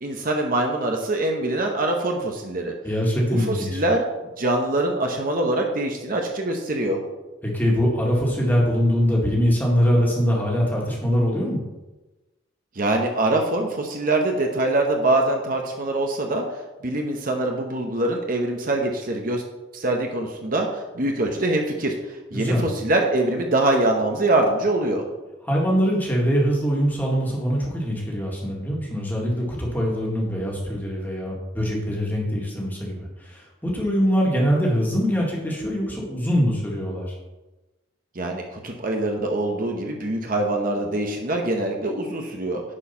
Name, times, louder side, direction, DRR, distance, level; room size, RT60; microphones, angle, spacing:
voice 1, 0.0-2.7 3.3-4.0 4.4-7.0 12.8-16.4 16.8-19.4 19.7-25.0 38.1-42.6, right 2 dB, 45° right, 2 dB, 0.9 m, -24 dB
voice 2, 2.8-3.8 7.4-11.6 22.3-22.6 25.4-37.2, equal, 10° left, -2 dB, 1.8 m, -23 dB
9.9 x 4.6 x 5.7 m, 1.1 s
head